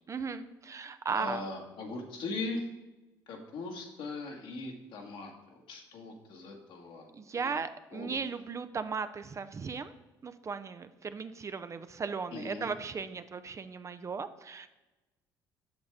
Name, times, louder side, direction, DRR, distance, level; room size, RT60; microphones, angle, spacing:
voice 1, 0.1-1.4 7.1-9.9 10.2-14.7, right 5 dB, 35° right, 11 dB, 0.5 m, -37 dB
voice 2, 1.1-2.7 3.3-7.6 7.9-8.1 12.3-12.7, left 3 dB, 65° left, 2 dB, 1.5 m, -40 dB
8.0 x 6.4 x 3.4 m, 1.1 s
supercardioid pair, 65°, 9 cm